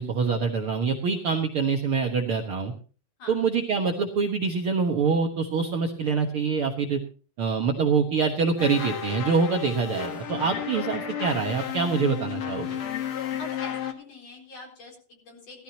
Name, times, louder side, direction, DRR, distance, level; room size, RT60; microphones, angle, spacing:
voice 1, 0.0-2.7 3.3-7.0 7.4-12.8, right 5 dB, 85° right, 2 dB, 1.2 m, -25 dB
sound 1, 8.6-13.9, left 9 dB, 55° left, 1.5 m, -33 dB
voice 2, 13.4-15.6, left 3 dB, 40° left, 1 dB, 4.9 m, -43 dB
18.5 x 13.5 x 2.9 m, 0.36 s
omnidirectional pair, 4.5 m